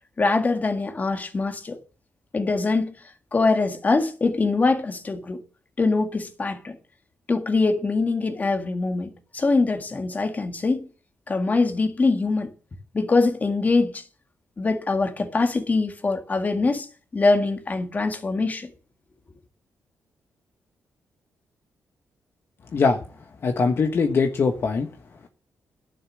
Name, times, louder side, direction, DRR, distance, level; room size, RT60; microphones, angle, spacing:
voice 1, 0.2-1.8 2.3-3.0 3.3-5.4 5.8-6.8 7.3-10.9 11.3-12.5 12.9-14.0 14.6-16.9 17.1-18.7, left 3 dB, 30° left, 1.9 m, -23 dB
voice 2, 23.4-24.9, left 4 dB, 50° left, 1.2 m, -21 dB
11.0 x 6.8 x 7.4 m
cardioid pair, 100°, 5 cm